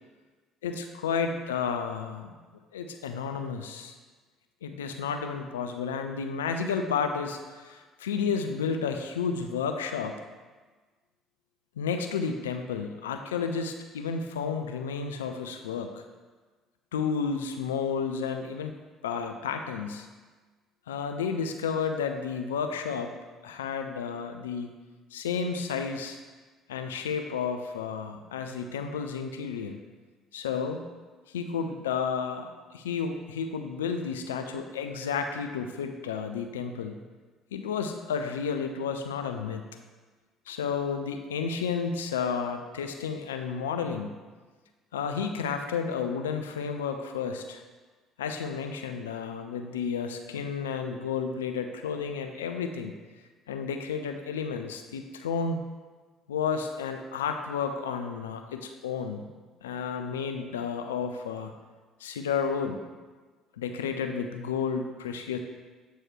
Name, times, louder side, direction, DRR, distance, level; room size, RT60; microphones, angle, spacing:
voice 1, 0.6-2.3 2.7-4.0 4.6-10.2 11.8-16.0 16.9-18.7 19.0-20.1 20.9-23.1 23.4-24.7 25.1-26.2 26.7-29.8 30.3-30.8 31.3-37.0 37.5-39.6 40.5-44.1 44.9-47.6 48.2-52.9 53.5-55.6 56.3-59.3 59.6-61.5 62.0-62.8 63.6-65.4, left 6 dB, 85° left, 6 dB, 0.3 m, -31 dB
8.0 x 3.1 x 4.4 m, 1.3 s
hypercardioid pair, 55°, 0 cm